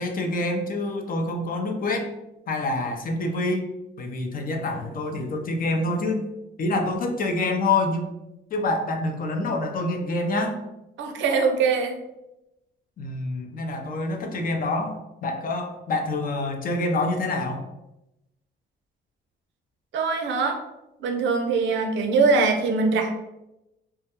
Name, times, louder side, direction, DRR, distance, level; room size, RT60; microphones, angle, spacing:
voice 1, 0.0-2.1 2.5-3.6 4.0-6.2 6.6-8.1 8.5-10.6 13.0-17.6, left 2 dB, 45° left, 3 dB, 0.4 m, -26 dB
voice 2, 11.0-12.0 19.9-20.6 21.0-23.1, right 4 dB, 70° right, 4 dB, 0.5 m, -22 dB
2.2 x 2.1 x 2.8 m, 0.93 s
cardioid pair, 90°, 20 cm